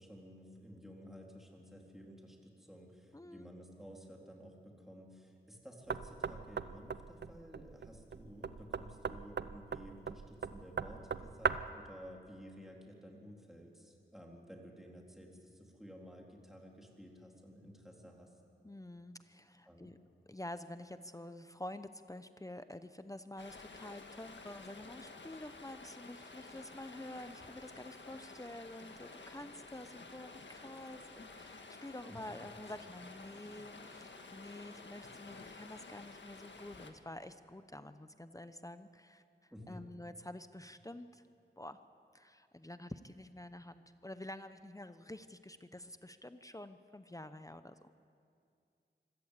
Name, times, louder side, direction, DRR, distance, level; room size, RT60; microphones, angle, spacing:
voice 1, 0.0-18.3 19.7-19.9 32.1-32.2 39.5-39.9, equal, ahead, -1 dB, 3.7 m, -53 dB
voice 2, 3.1-3.5 18.6-20.0 20.3-41.2 41.6-41.8 42.1-47.7, left 1 dB, 20° left, 11 dB, 0.7 m, -49 dB
Knock, 5.9-11.8, right 5 dB, 65° right, 0.6 m, -39 dB
Stream, 23.4-36.9, left 3 dB, 80° left, 1.7 m, -52 dB
25.0 x 16.0 x 8.3 m, 2.4 s
wide cardioid pair, 80°, 19 cm